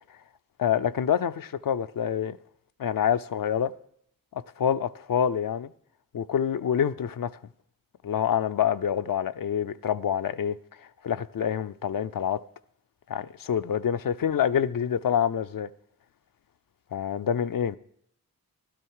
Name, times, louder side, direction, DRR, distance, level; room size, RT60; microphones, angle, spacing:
voice 1, 0.6-2.4 2.8-3.7 4.3-5.7 6.1-7.3 8.0-10.6 11.0-12.4 13.1-15.7 16.9-17.8, left 8 dB, 65° left, 0.5 m, -26 dB
12.5 x 12.0 x 4.7 m
cardioid pair, 50°, 36 cm